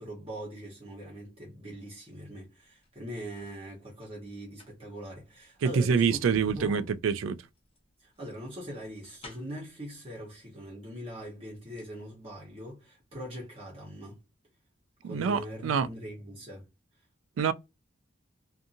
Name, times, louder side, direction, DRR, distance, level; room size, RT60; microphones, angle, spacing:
voice 1, 0.0-6.2 6.6-6.9 8.0-14.2 15.0-16.7, equal, 30° right, 1.0 m, -42 dB
sound 1, 2.6-3.6 4.3-9.7 10.7-10.8 11.2-12.0 12.3-12.4, left 1 dB, 30° left, 0.7 m, -52 dB
voice 2, 5.6-7.4 15.0-15.9 17.4-17.5, right 6 dB, 85° right, 0.3 m, -26 dB
2.6 x 2.5 x 2.5 m
head